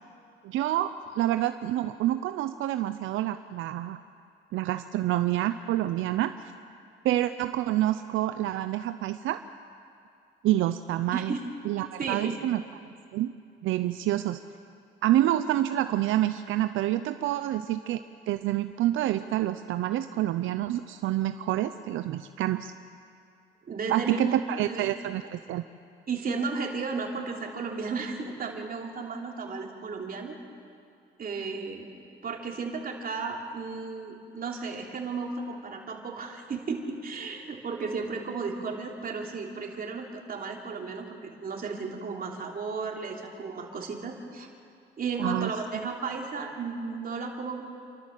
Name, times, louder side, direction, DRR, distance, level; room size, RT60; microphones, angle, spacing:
voice 1, 0.4-4.0 4.5-6.5 7.0-9.4 10.4-11.3 11.7-12.6 13.1-13.3 13.6-14.4 15.0-18.0 18.3-22.7 23.9-25.6 45.2-45.5, right 13 dB, 85° right, 10 dB, 0.6 m, -27 dB
voice 2, 12.0-12.3 23.7-24.9 26.1-30.4 31.2-31.9 32.2-44.5 45.0-47.6, right 4 dB, 45° right, 0 dB, 3.1 m, -34 dB
29.0 x 12.5 x 7.4 m, 2.5 s
cardioid pair, 90°, 20 cm